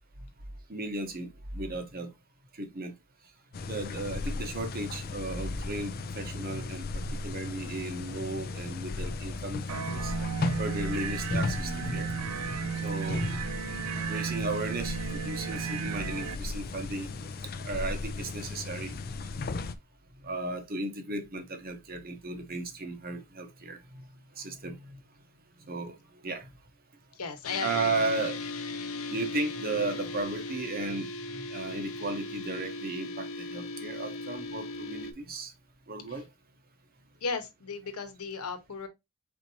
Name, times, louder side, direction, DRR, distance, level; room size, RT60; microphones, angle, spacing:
voice 1, 0.7-2.1 2.6-2.9 3.7-10.1 10.6-12.1 12.8-13.4 14.1-17.4 17.6-18.9 20.2-23.8 24.4-25.0 25.7-25.9 26.2-26.4 27.6-28.4 29.1-35.5 35.9-36.2, right 2 dB, 45° right, 0.9 m, -35 dB
sound 1, 3.5-19.8, left 3 dB, 45° left, 0.4 m, -36 dB
sound 2, 9.7-16.3, right 7 dB, 85° right, 0.4 m, -34 dB
voice 2, 27.1-28.3 36.1-36.2 37.2-38.9, left 4 dB, 85° left, 1.1 m, -36 dB
sound 3, 27.4-35.1, left 2 dB, 70° left, 0.7 m, -38 dB
4.5 x 4.0 x 2.8 m
head